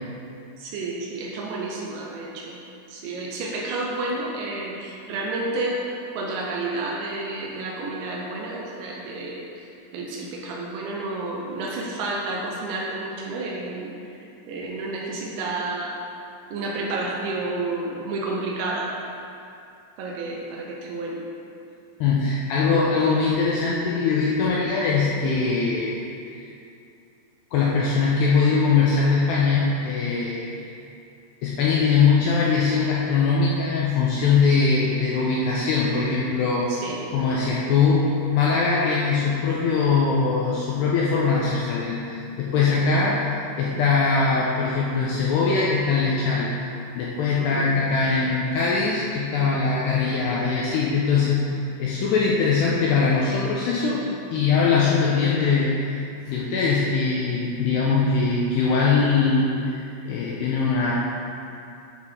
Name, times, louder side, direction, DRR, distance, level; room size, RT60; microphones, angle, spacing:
voice 1, 0.6-2.6 2.9-5.8 6.1-13.9 14.5-16.0 16.5-18.9 20.0-21.2 22.7-23.0 36.7-37.0 47.4-47.7, right 2 dB, 80° right, -3 dB, 2.9 m, -30 dB
voice 2, 22.0-25.9 26.3-26.5 27.5-30.5 31.4-36.7 37.1-46.5 47.0-51.5 51.8-54.0 54.3-56.0 56.3-60.9, left 4 dB, 90° left, -5 dB, 2.4 m, -21 dB
12.5 x 4.1 x 3.7 m, 2.6 s
omnidirectional pair, 5.5 m